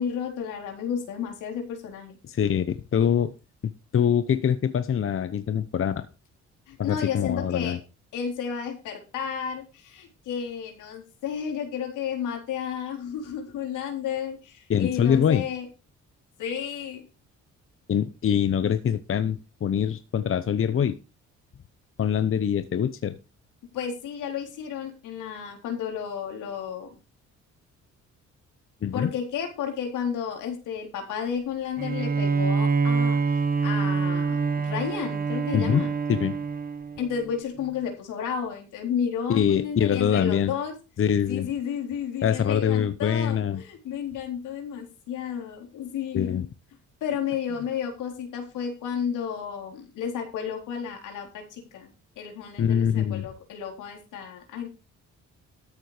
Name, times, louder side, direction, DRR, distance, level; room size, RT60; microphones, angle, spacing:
voice 1, 0.0-2.2 6.7-7.8 8.1-15.6 16.4-17.0 23.7-26.9 28.9-33.2 33.6-34.4 34.6-35.9 37.0-40.7 41.3-46.4 47.0-51.9 52.2-54.7, left 7 dB, 85° left, 2 dB, 4.0 m, -32 dB
voice 2, 2.2-3.3 3.6-6.1 6.8-7.8 14.7-15.4 17.9-21.0 22.0-23.2 28.8-29.1 35.5-36.4 39.3-40.5 41.0-41.5 42.2-43.6 46.1-46.5 52.6-53.3, left 8 dB, 45° left, 12 dB, 0.9 m, -24 dB
Bowed string instrument, 31.8-37.2, right 4 dB, 30° right, 1.6 m, -26 dB
13.5 x 7.5 x 5.0 m, 0.30 s
cardioid pair, 90°, 30 cm